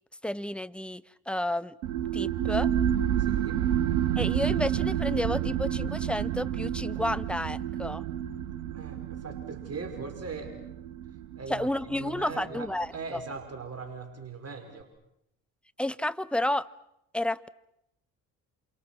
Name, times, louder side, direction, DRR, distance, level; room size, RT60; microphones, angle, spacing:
voice 1, 0.2-1.8 2.1-2.7 4.2-8.1 11.5-12.9 15.8-16.7 17.1-17.5, left 1 dB, ahead, 15 dB, 1.1 m, -31 dB
sound 1, 1.8-13.0, right 10 dB, 80° right, 1.4 m, -30 dB
voice 2, 3.2-3.6 8.7-10.6 11.4-14.9, right 4 dB, 35° right, 6 dB, 5.4 m, -40 dB
28.0 x 28.0 x 6.1 m, 0.79 s
hypercardioid pair, 50°, 44 cm